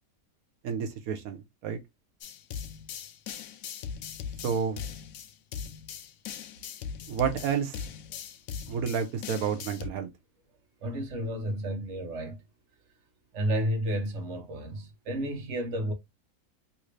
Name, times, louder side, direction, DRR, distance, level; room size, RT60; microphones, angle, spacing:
voice 1, 0.6-1.8 4.4-4.8 7.1-7.8 8.7-10.1, right 7 dB, 90° right, 1.2 m, -30 dB
sound 1, 2.2-9.9, left 7 dB, 75° left, 1.0 m, -40 dB
voice 2, 10.8-12.4 13.3-15.9, right 1 dB, 60° right, 1.3 m, -31 dB
3.3 x 2.6 x 3.1 m
omnidirectional pair, 1.5 m